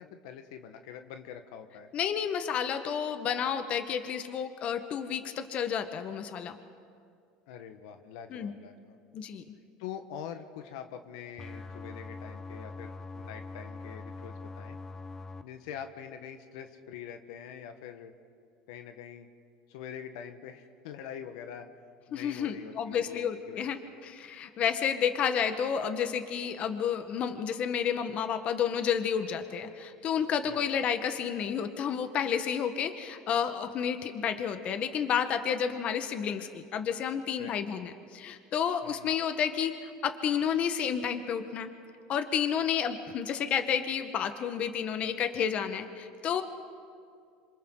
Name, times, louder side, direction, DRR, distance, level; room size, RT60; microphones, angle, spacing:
voice 1, 0.0-1.9 7.5-9.0 9.8-14.8 15.4-18.1 18.7-19.3 19.7-21.7 22.1-23.7 30.5-30.6 37.4-37.6 38.8-39.1, left 8 dB, 80° left, 7 dB, 1.3 m, -44 dB
voice 2, 1.9-6.6 8.3-8.5 9.1-9.4 22.1-23.8 24.0-41.7 42.1-46.4, left 8 dB, 45° left, 8 dB, 1.3 m, -31 dB
sound 1, 11.4-15.4, left 3 dB, 15° left, 0.8 m, -43 dB
27.0 x 26.5 x 3.9 m, 2.3 s
supercardioid pair, 125°, 3 cm